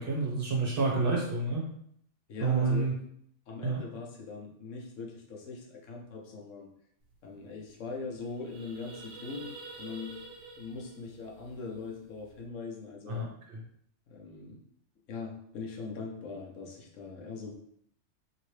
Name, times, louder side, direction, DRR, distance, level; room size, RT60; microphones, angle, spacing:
voice 1, 0.0-1.7 2.4-2.9 3.6-3.8 13.1-13.6, right 4 dB, 50° right, -3 dB, 0.9 m, -29 dB
voice 2, 2.3-2.9 3.5-6.7 7.2-10.2 10.6-13.3 14.1-14.6 15.1-17.5, left 4 dB, 70° left, 0 dB, 1.0 m, -41 dB
sound 1, 7.1-7.2 7.5-7.7 8.0-12.4, right 3 dB, 85° right, 1.1 m, -48 dB
3.0 x 2.8 x 3.1 m, 0.67 s
omnidirectional pair, 1.4 m